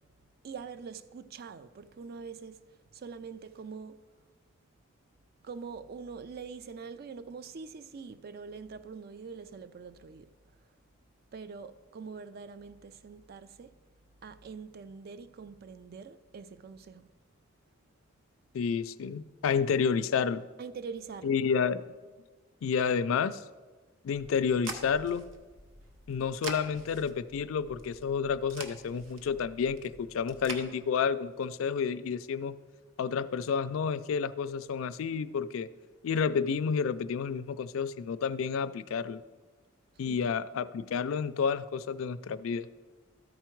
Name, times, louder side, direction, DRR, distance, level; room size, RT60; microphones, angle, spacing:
voice 1, 0.4-4.0 5.4-10.7 11.3-13.8 14.2-17.1 20.6-21.4 40.0-40.4, right 5 dB, 50° right, 0.4 m, -44 dB
voice 2, 18.5-20.5 21.2-21.8 22.6-23.4 24.0-25.2 26.1-32.5 33.0-35.7 36.0-39.2 40.0-42.7, left 6 dB, 80° left, 0.3 m, -30 dB
sound 1, 24.1-30.6, right 3 dB, 75° right, 0.9 m, -45 dB
13.0 x 4.6 x 4.5 m
head